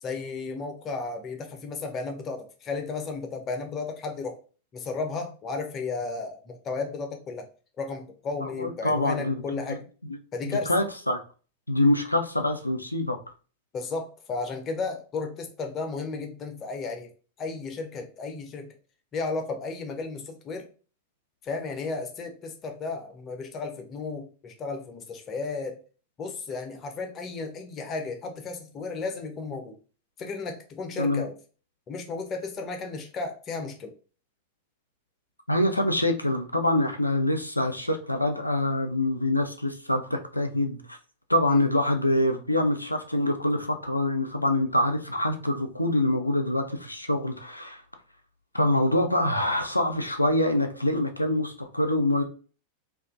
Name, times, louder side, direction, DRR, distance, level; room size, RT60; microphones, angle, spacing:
voice 1, 0.0-4.4 4.7-7.5 7.8-9.8 10.3-10.7 13.7-17.1 17.4-18.7 19.1-20.7 21.4-25.8 26.2-29.8 30.2-31.3 31.9-33.9 41.5-41.6, left 4 dB, 30° left, 5 dB, 0.5 m, -34 dB
voice 2, 8.4-9.8 10.1-10.2 10.7-11.2 11.7-13.2 31.0-31.3 35.5-41.0 41.3-47.8 48.5-52.2, left 1 dB, 85° left, 5 dB, 0.3 m, -25 dB
2.4 x 2.3 x 2.4 m, 0.37 s
figure-of-eight pair, 90°, 0 cm